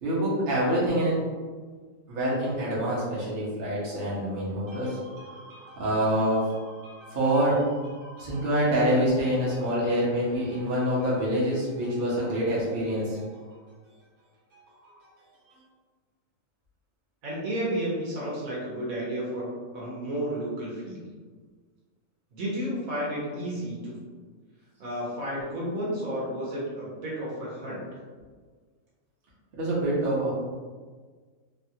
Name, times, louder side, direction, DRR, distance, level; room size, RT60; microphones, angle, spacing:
voice 1, 0.0-1.2 2.1-13.4 14.5-15.1 15.5-15.6 29.5-30.3, right 1 dB, 45° right, -7 dB, 0.9 m, -26 dB
voice 2, 17.2-21.0 22.3-23.9 24.8-27.8, equal, 65° right, -6 dB, 1.2 m, -32 dB
3.1 x 2.3 x 2.7 m, 1.5 s
omnidirectional pair, 1.7 m